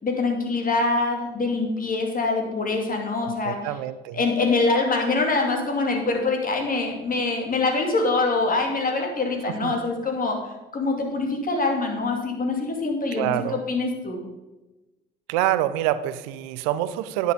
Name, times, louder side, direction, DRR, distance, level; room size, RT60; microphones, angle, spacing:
voice 1, 0.0-3.6 4.1-10.4 10.7-14.2, left 3 dB, 40° left, 2 dB, 2.6 m, -24 dB
voice 2, 3.2-4.2 9.4-9.7 13.1-13.6 15.3-17.3, right 13 dB, 85° right, 14 dB, 0.5 m, -26 dB
10.0 x 6.4 x 5.3 m, 1.1 s
hypercardioid pair, 55°, 21 cm